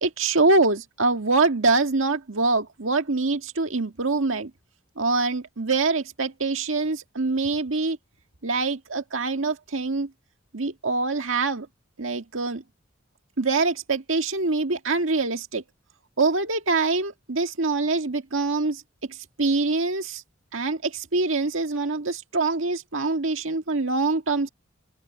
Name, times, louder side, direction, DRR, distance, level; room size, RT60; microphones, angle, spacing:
voice 1, 0.0-4.5 5.0-8.0 8.4-10.1 10.5-11.7 12.0-12.6 13.4-15.6 16.2-18.8 19.1-20.2 20.5-24.5, right 3 dB, 90° right, 1.8 m, -24 dB
open air
head